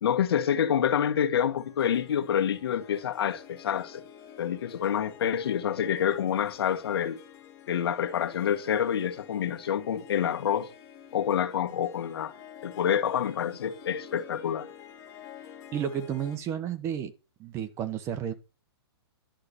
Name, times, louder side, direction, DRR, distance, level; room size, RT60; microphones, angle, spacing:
voice 1, 0.0-4.0 4.4-7.2 7.7-10.7 11.1-12.3 12.6-14.7, left 9 dB, 65° left, 1.6 m, -27 dB
Harp, 1.5-16.4, left 9 dB, 20° left, 2.9 m, -49 dB
voice 2, 15.7-17.1 17.4-18.3, right 9 dB, 20° right, 1.2 m, -32 dB
11.5 x 5.9 x 6.9 m
hypercardioid pair, 160°, 14 cm